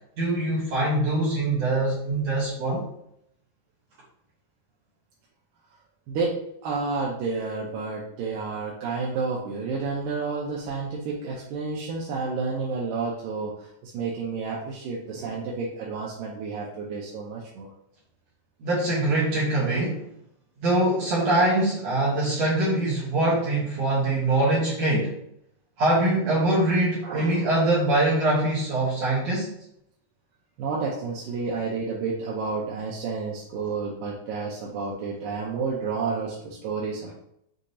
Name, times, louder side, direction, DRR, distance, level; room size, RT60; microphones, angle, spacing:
voice 1, 0.2-2.8 18.6-20.0 20.6-25.2 25.8-29.5, right 1 dB, 65° right, -7 dB, 1.8 m, -23 dB
voice 2, 6.1-17.7 27.0-27.4 30.6-37.1, right 4 dB, 80° right, -4 dB, 2.3 m, -30 dB
6.3 x 2.8 x 2.7 m, 0.74 s
omnidirectional pair, 4.0 m